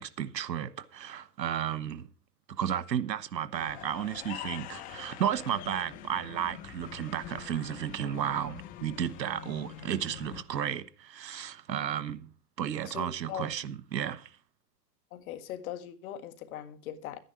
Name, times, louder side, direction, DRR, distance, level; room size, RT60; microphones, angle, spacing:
voice 1, 0.0-2.1 2.5-12.3 12.6-14.3, right 9 dB, 85° right, 1.2 m, -33 dB
sound 1, 3.5-10.4, left 12 dB, 15° left, 0.5 m, -45 dB
voice 2, 12.9-13.5 15.1-17.2, left 11 dB, 55° left, 1.9 m, -40 dB
11.5 x 10.0 x 4.7 m
hypercardioid pair, 130°, 50 cm